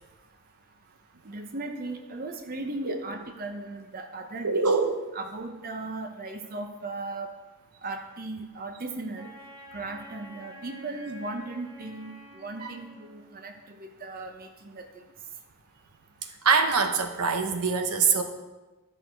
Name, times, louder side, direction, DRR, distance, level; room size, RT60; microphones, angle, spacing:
voice 1, 1.2-4.7 5.1-7.3 7.8-9.3 9.7-15.0, right 2 dB, 40° right, 5 dB, 0.8 m, -37 dB
voice 2, 4.4-5.0 12.6-12.7 16.2-18.2, right 5 dB, 80° right, 6 dB, 0.9 m, -24 dB
Wind instrument woodwind instrument, 9.1-13.5, equal, 20° right, 1.3 m, -48 dB
12.0 x 5.8 x 4.6 m, 1.1 s
head